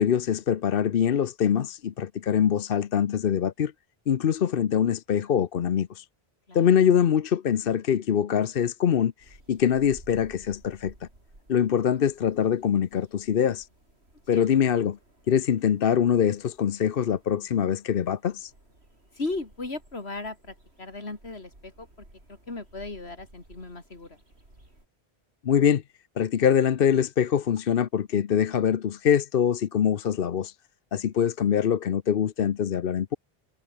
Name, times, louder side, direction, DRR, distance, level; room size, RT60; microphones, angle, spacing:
voice 1, 0.0-3.7 4.1-6.1 6.5-11.1 11.5-13.7 14.3-15.0 15.3-18.5 25.4-25.8 26.2-30.5 30.9-33.2, left 8 dB, 60° left, 0.9 m, -24 dB
sound 1, 9.2-24.9, right 1 dB, 85° right, 7.2 m, -56 dB
voice 2, 19.2-21.9 22.5-24.2, left 3 dB, 80° left, 3.5 m, -36 dB
omnidirectional pair, 1.1 m